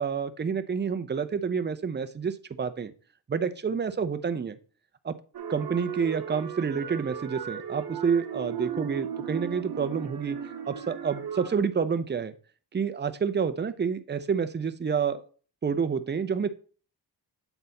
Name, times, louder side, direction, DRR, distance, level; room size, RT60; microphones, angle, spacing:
voice 1, 0.0-2.9 3.3-4.6 5.0-5.1 5.5-10.4 10.7-12.3 12.7-15.3 15.6-16.5, right 6 dB, 25° right, 10 dB, 0.6 m, -28 dB
sound 1, 5.3-11.6, right 8 dB, 60° right, 0.9 m, -36 dB
7.9 x 4.0 x 4.1 m, 0.39 s
wide cardioid pair, 105°, 41 cm